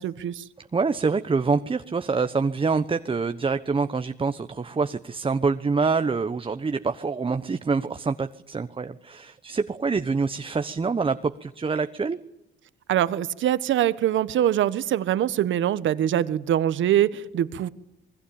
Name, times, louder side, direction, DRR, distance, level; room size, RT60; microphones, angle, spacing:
voice 1, 0.0-0.4 12.9-17.7, right 11 dB, 75° right, 15 dB, 1.4 m, -23 dB
voice 2, 0.6-12.2, right 4 dB, 25° right, 10 dB, 1.1 m, -26 dB
27.5 x 21.0 x 8.8 m, 0.84 s
cardioid pair, 90°, 20 cm